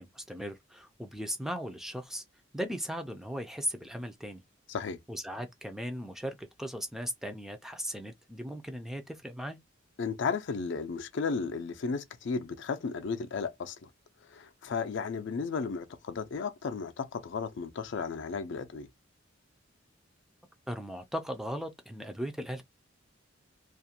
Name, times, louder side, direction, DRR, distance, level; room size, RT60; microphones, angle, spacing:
voice 1, 0.0-2.2 2.5-4.4 5.1-9.6 20.7-22.6, equal, ahead, 0.3 m, -37 dB
voice 2, 10.0-13.9 14.3-18.9, left 5 dB, 65° left, 0.4 m, -34 dB
2.4 x 2.1 x 2.7 m
head